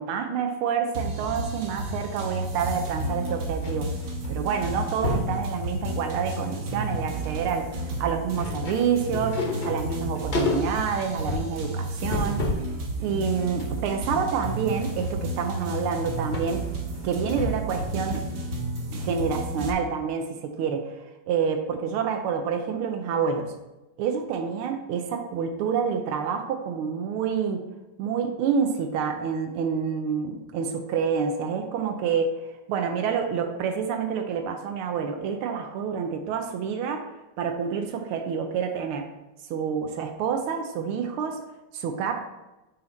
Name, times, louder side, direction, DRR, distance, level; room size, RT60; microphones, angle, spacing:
voice 1, 0.0-3.9 4.3-12.4 13.0-16.6 17.0-18.2 18.9-21.0 21.3-23.5 24.0-27.6 28.0-32.3 32.7-37.1 37.4-39.1 39.5-41.4 41.7-42.1, right 6 dB, 90° right, 5 dB, 1.6 m, -28 dB
sound 1, 0.9-19.7, right 1 dB, 60° right, 1.7 m, -32 dB
sound 2, 1.6-3.7 4.0-4.3 4.5-5.4 5.9-6.6 6.9-12.7 13.1-17.8 18.1-18.2, left 2 dB, 55° left, 0.5 m, -33 dB
8.5 x 4.2 x 3.8 m, 1.0 s
omnidirectional pair, 2.3 m